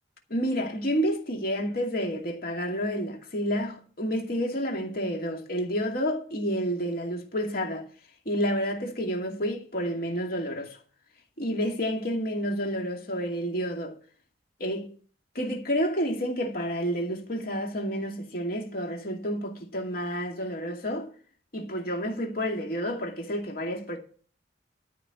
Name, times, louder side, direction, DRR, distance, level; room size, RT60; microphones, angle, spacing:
voice 1, 0.3-7.8 8.3-10.8 11.4-14.0 14.6-14.9 15.3-21.1 21.5-24.0, equal, 50° left, 2.4 m, -30 dB
13.0 x 5.5 x 7.9 m
head